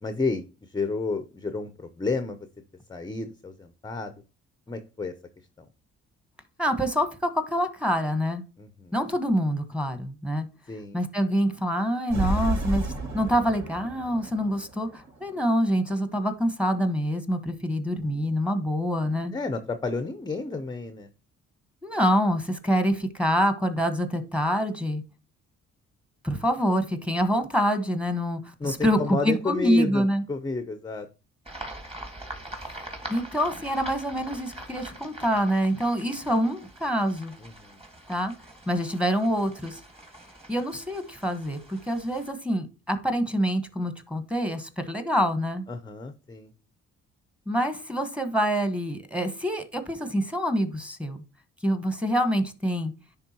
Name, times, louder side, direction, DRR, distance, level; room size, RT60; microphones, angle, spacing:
voice 1, 0.0-2.4 2.9-4.2 4.7-5.1 5.6-5.7 8.6-9.0 10.7-11.0 19.3-21.1 28.6-31.1 37.4-37.8 45.7-46.5, left 3 dB, 15° left, 10 dB, 0.6 m, -31 dB
voice 2, 6.6-8.4 8.9-10.5 10.9-19.3 21.8-25.0 26.2-30.2 33.1-37.3 38.1-38.3 38.7-39.8 40.5-45.7 47.5-51.2 51.6-52.9, equal, 5° right, 9 dB, 1.2 m, -26 dB
sound 1, 12.1-15.5, right 1 dB, 80° right, 2.4 m, -31 dB
sound 2, 31.5-42.3, right 1 dB, 20° right, 1.9 m, -43 dB
10.5 x 3.5 x 2.9 m, 0.32 s
cardioid pair, 90°, 30 cm